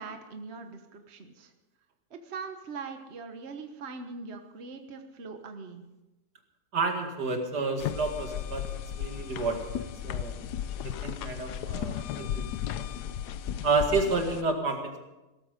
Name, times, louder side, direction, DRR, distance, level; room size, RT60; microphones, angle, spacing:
voice 1, 0.0-1.5 2.1-5.8, right 4 dB, 45° right, 6 dB, 1.4 m, -41 dB
voice 2, 6.7-10.5 10.8-12.5 12.8-12.9 13.6-15.0, right 3 dB, 90° right, 4 dB, 2.6 m, -30 dB
sound 1, 7.8-14.4, left 10 dB, 85° left, 1.3 m, -35 dB
17.5 x 14.0 x 5.2 m, 1.0 s
omnidirectional pair, 1.7 m